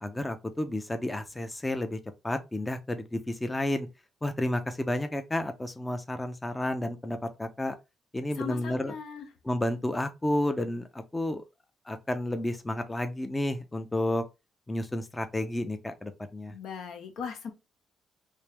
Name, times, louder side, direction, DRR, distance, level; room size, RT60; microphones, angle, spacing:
voice 1, 0.0-3.9 4.2-7.7 8.1-8.9 9.4-11.4 11.9-14.2 14.7-16.6, left 1 dB, 15° left, 0.5 m, -31 dB
voice 2, 8.4-9.3 16.5-17.5, left 6 dB, 75° left, 0.9 m, -38 dB
3.2 x 2.9 x 3.2 m
cardioid pair, 90°, 0 cm